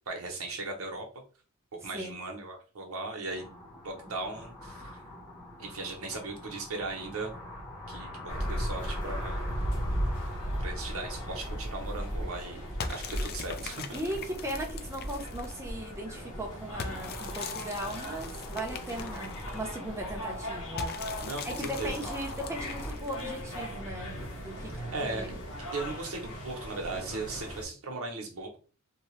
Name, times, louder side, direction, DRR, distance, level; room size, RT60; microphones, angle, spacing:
voice 1, 0.1-1.1 1.8-5.0 5.6-7.3 7.9-9.4 10.6-12.6 12.9-14.0 21.2-22.1 24.9-25.3 25.7-28.6, right 3 dB, 70° right, 2 dB, 0.8 m, -38 dB
voice 2, 1.8-2.2 13.9-25.3, right 1 dB, 10° right, 1 dB, 0.6 m, -38 dB
sound 1, 3.3-22.9, left 1 dB, 15° left, 1.0 m, -45 dB
sound 2, 8.3-27.7, equal, 75° left, 1.1 m, -37 dB
sound 3, 12.8-15.7 16.8-19.8 20.8-23.4, left 5 dB, 45° left, 0.3 m, -42 dB
2.7 x 2.2 x 3.0 m, 0.37 s
head